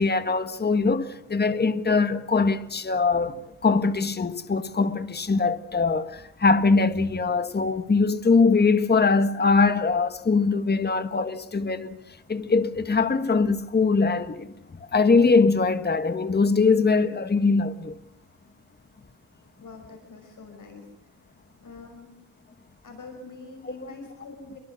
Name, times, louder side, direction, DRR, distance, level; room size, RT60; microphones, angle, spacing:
voice 1, 0.0-12.0 12.3-14.5 14.9-18.0, left 4 dB, 25° left, 1.5 m, -22 dB
voice 2, 19.6-20.9 21.6-22.1 22.8-24.6, left 3 dB, 50° left, 6.1 m, -44 dB
28.0 x 23.5 x 6.4 m
wide cardioid pair, 130°, 40 cm